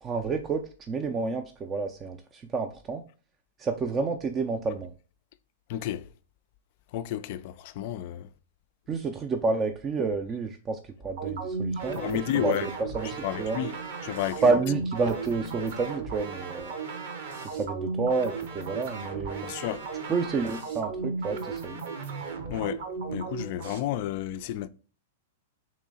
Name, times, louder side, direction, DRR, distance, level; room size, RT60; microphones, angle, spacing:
voice 1, 0.0-3.0 3.6-4.9 8.9-12.0 12.3-13.6 14.4-16.7 17.5-19.5 20.1-21.8, right 4 dB, 25° right, 0.4 m, -29 dB
voice 2, 5.7-6.0 6.9-8.3 12.0-12.7 13.2-13.7 14.0-14.4 19.4-19.8 22.5-22.8 23.1-24.7, left 12 dB, 50° left, 0.3 m, -31 dB
sound 1, 11.2-23.8, right 4 dB, 60° right, 0.8 m, -35 dB
3.1 x 3.1 x 3.7 m
hypercardioid pair, 105°, 0 cm